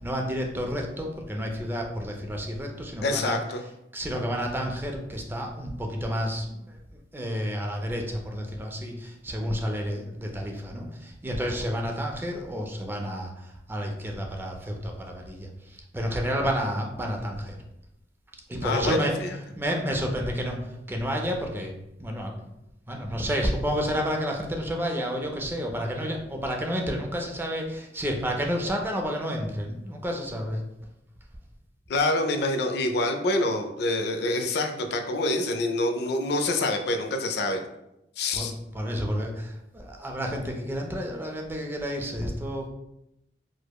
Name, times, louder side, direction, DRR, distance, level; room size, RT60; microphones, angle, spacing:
voice 1, 0.0-3.4 3.9-6.8 7.1-17.6 18.5-19.1 19.6-21.7 22.0-22.3 22.9-30.6 38.3-42.7, equal, 10° right, 1 dB, 0.4 m, -30 dB
voice 2, 3.0-3.6 18.6-19.3 31.9-37.6 38.2-38.5, left 2 dB, 65° left, 5 dB, 0.4 m, -26 dB
4.6 x 2.0 x 2.2 m, 0.86 s
head